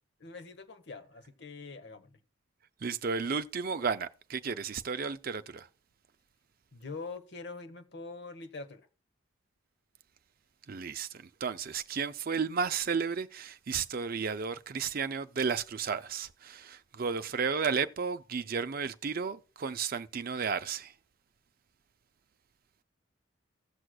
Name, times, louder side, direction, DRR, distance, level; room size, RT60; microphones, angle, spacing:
voice 1, 0.2-2.1 6.7-8.9, left 3 dB, 55° left, 1.1 m, -44 dB
voice 2, 2.8-5.7 10.7-20.9, right 5 dB, 45° right, 0.5 m, -33 dB
16.5 x 6.3 x 2.3 m
head